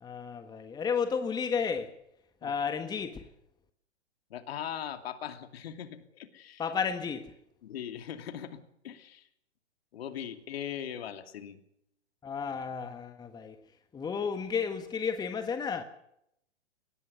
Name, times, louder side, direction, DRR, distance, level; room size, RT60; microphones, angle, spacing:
voice 1, 0.0-1.9 2.4-3.3 6.6-7.3 12.2-13.6 13.9-15.8, left 6 dB, 10° left, 1.5 m, -32 dB
voice 2, 4.3-6.6 7.6-9.3 9.9-11.6, left 9 dB, 55° left, 2.7 m, -40 dB
22.5 x 19.0 x 6.8 m
figure-of-eight pair, 120°, 36 cm